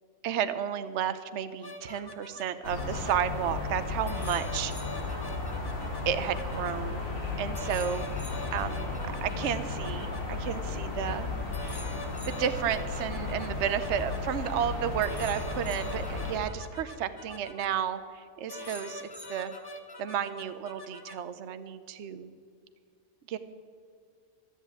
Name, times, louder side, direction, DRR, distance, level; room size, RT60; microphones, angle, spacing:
voice 1, 0.2-4.7 6.1-7.0 7.4-8.1 8.5-8.8 9.2-11.3 12.2-19.5 20.0-22.3 23.3-23.4, right 9 dB, 60° right, 12 dB, 0.9 m, -32 dB
sound 1, 1.6-3.1 4.0-6.7 7.5-10.2 11.0-11.2 11.5-14.2 15.0-17.7 18.5-21.1, left 2 dB, 25° left, 0.6 m, -44 dB
sound 2, 2.6-16.4, left 3 dB, 65° left, 2.5 m, -34 dB
13.5 x 8.2 x 8.8 m, 2.2 s
omnidirectional pair, 1.5 m